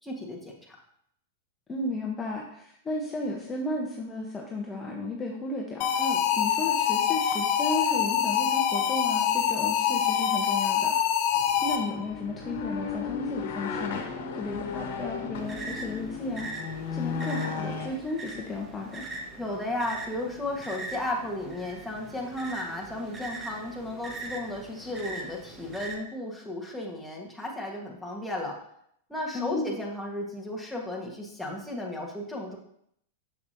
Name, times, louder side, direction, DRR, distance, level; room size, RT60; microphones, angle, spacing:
voice 1, 0.0-0.8 6.0-6.2 19.4-28.6 29.1-32.6, left 1 dB, ahead, -3 dB, 1.6 m, -34 dB
voice 2, 1.7-6.0 6.4-11.1 11.6-14.0 14.4-16.5 16.9-19.1 29.3-29.7, left 2 dB, 20° left, -2 dB, 1.1 m, -34 dB
sound 1, 5.8-12.1, left 9 dB, 50° left, 0.6 m, -25 dB
sound 2, 11.3-17.9, left 5 dB, 65° left, 1.3 m, -35 dB
sound 3, 15.3-26.0, right 2 dB, 20° right, 1.5 m, -41 dB
6.7 x 6.6 x 2.8 m, 0.71 s
hypercardioid pair, 115°, 0 cm